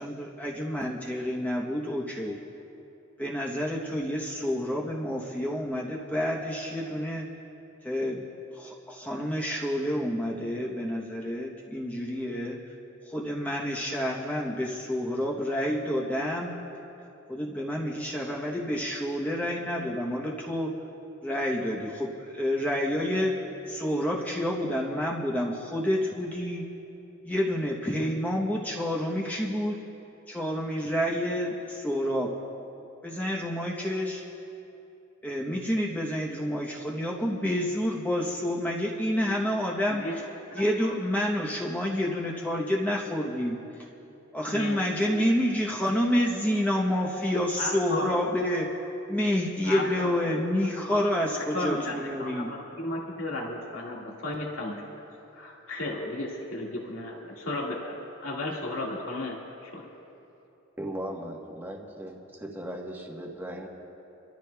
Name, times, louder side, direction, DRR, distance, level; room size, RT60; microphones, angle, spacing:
voice 1, 0.0-2.4 3.2-7.3 7.8-8.3 8.5-12.6 13.0-16.5 17.3-20.7 21.2-23.4 23.7-26.7 27.2-29.8 30.3-32.3 33.0-34.2 35.2-40.2 40.5-43.9 44.3-52.5, equal, 10° left, -3 dB, 0.9 m, -29 dB
voice 2, 44.5-44.8 45.1-45.3 47.6-48.2 49.6-50.2 50.9-51.0 51.3-55.1 55.3-59.9, left 2 dB, 70° left, -3 dB, 1.9 m, -34 dB
voice 3, 60.8-63.7, right 1 dB, 10° right, 0 dB, 1.1 m, -37 dB
28.0 x 13.5 x 2.3 m, 2.9 s
head